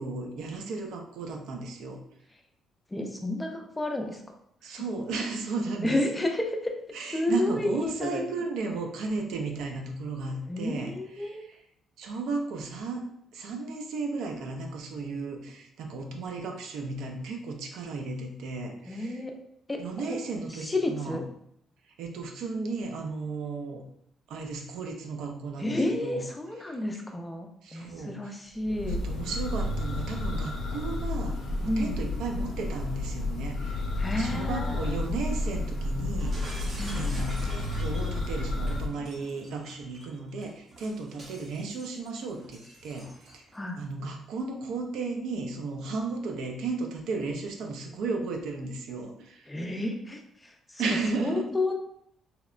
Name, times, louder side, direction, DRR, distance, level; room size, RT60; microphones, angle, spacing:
voice 1, 0.0-2.0 4.6-6.2 6.9-11.5 12.0-13.0 13.3-19.2 19.8-21.2 21.8-23.8 24.3-26.2 27.6-28.3 28.9-43.5 43.8-49.6 50.8-51.5, right 3 dB, 80° right, 3 dB, 0.4 m, -35 dB
voice 2, 2.9-4.2 5.8-6.7 7.1-8.2 10.5-11.5 18.9-19.4 19.7-20.2 20.5-21.2 25.6-29.0 31.7-31.9 34.0-35.0 36.8-37.1 43.5-43.8 49.5-51.7, left 1 dB, 10° left, 3 dB, 0.3 m, -31 dB
Church bell, 28.6-38.9, left 2 dB, 80° left, 0.4 m, -31 dB
Shatter, 36.2-43.6, right 2 dB, 40° right, 0.6 m, -45 dB
2.8 x 2.1 x 2.4 m, 0.70 s
cardioid pair, 140°, 0 cm